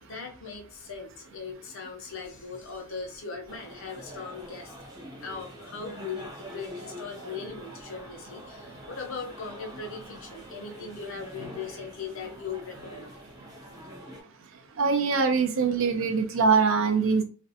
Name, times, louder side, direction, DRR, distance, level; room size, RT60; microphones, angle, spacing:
voice 1, 0.0-4.7 5.2-13.1, left 5 dB, 70° left, 2 dB, 0.7 m, -39 dB
sound 1, 3.5-14.2, equal, 15° right, 0.4 m, -45 dB
voice 2, 14.8-17.2, right 5 dB, 70° right, 7 dB, 0.5 m, -23 dB
2.5 x 2.1 x 2.7 m, 0.37 s
head